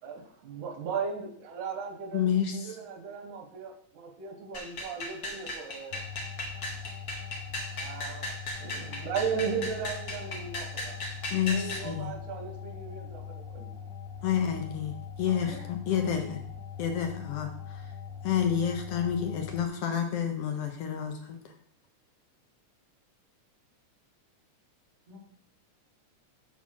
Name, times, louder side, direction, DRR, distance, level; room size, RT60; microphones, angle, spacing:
voice 1, 0.0-6.0 7.7-8.3 8.6-11.0 11.4-13.8, right 6 dB, 90° right, 3 dB, 2.6 m, -37 dB
voice 2, 2.1-2.7 11.3-12.1 14.2-16.4 16.8-17.9 18.2-21.5, left 8 dB, 65° left, 4 dB, 1.6 m, -29 dB
sound 1, 4.5-11.9, left 1 dB, 50° left, 1.2 m, -37 dB
sound 2, 5.9-19.7, left 7 dB, 85° left, 2.1 m, -42 dB
voice 3, 15.3-15.7 15.9-16.4 25.1-25.2, equal, 60° right, -9 dB, 3.6 m, -47 dB
7.0 x 4.1 x 6.2 m, 0.63 s
omnidirectional pair, 3.4 m